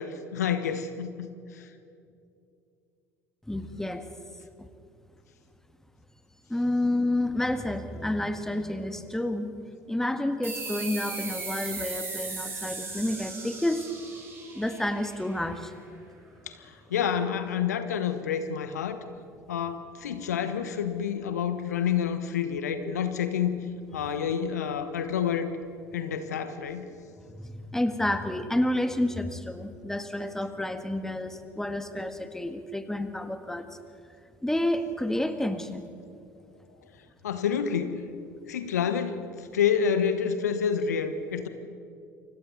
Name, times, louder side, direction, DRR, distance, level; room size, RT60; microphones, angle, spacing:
voice 1, 0.0-1.7 16.5-19.0 19.5-23.6 23.9-25.5 25.9-26.9 37.2-38.0 38.5-41.5, left 7 dB, 75° left, 10 dB, 1.2 m, -28 dB
voice 2, 3.5-4.1 4.6-4.7 6.5-9.5 9.9-13.9 14.5-15.7 22.8-22.9 27.3-33.7 34.4-35.9, left 1 dB, 5° left, 9 dB, 1.7 m, -29 dB
sound 1, 10.4-15.6, right 3 dB, 25° right, 6.7 m, -37 dB
29.5 x 25.5 x 4.1 m, 2.5 s
figure-of-eight pair, 65°, 9 cm